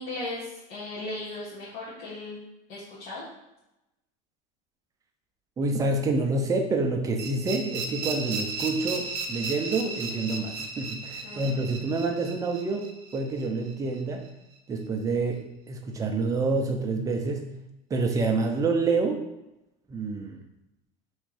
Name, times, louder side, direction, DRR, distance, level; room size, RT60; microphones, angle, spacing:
voice 1, 0.0-2.4 2.7-3.3 11.2-11.7, left 2 dB, 60° left, -9 dB, 1.5 m, -37 dB
voice 2, 5.6-14.2 14.7-17.5 17.9-19.2 19.9-20.4, right 3 dB, 20° right, 3 dB, 0.5 m, -27 dB
sound 1, 7.2-14.0, right 3 dB, 55° right, 0.7 m, -35 dB
3.4 x 3.2 x 4.8 m, 0.91 s
cardioid pair, 150°, 18 cm